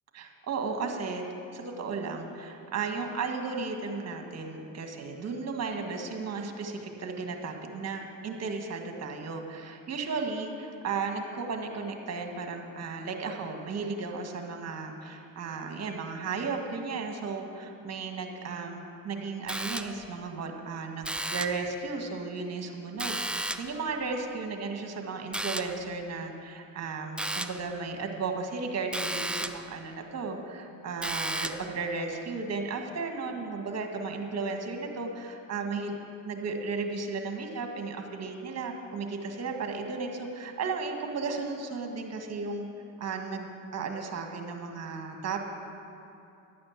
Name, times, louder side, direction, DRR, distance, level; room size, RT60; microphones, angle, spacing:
voice 1, 0.1-1.2 1.5-36.0 36.2-42.7 43.0-45.5, right 4 dB, 35° right, 4 dB, 1.9 m, -35 dB
sound 1, 19.5-20.2 21.0-21.7 23.0-23.8 25.3-25.9 27.2-27.7 28.9-29.7 31.0-31.8, right 1 dB, 5° right, 0.4 m, -34 dB
11.5 x 8.7 x 7.4 m, 2.7 s
supercardioid pair, 90°, 42 cm